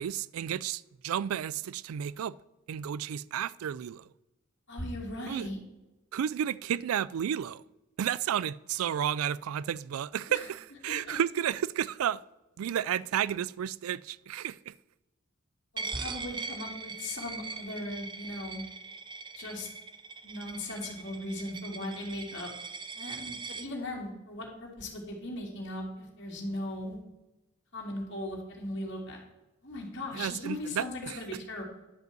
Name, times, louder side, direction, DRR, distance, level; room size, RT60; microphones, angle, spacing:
voice 1, 0.0-2.4 2.7-4.1 5.3-5.5 6.1-7.6 8.0-12.2 12.6-14.7 30.1-31.2, right 9 dB, 90° right, 0.3 m, -32 dB
voice 2, 4.7-5.6 10.3-10.4 10.9-11.2 15.7-18.7 19.4-19.7 20.2-22.5 22.9-27.0 27.7-29.2 29.6-31.6, left 1 dB, 55° left, 2.5 m, -38 dB
Coin (dropping), 15.8-23.7, right 4 dB, 20° right, 0.5 m, -41 dB
10.5 x 5.3 x 7.7 m
head